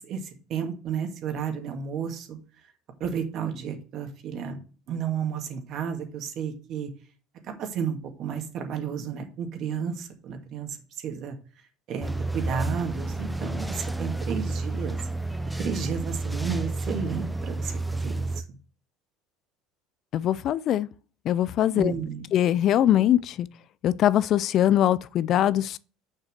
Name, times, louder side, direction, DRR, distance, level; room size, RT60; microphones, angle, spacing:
voice 1, 0.0-2.4 3.0-4.6 4.9-6.9 7.4-11.4 11.9-15.0 15.6-18.4 21.7-22.3, right 7 dB, 50° right, 2.0 m, -32 dB
sound 1, 12.0-18.4, right 2 dB, ahead, 0.7 m, -30 dB
voice 2, 20.1-20.9 21.3-21.9 22.3-23.5 23.8-25.8, left 11 dB, 50° left, 0.3 m, -22 dB
6.7 x 5.8 x 6.6 m
supercardioid pair, 115°, 0 cm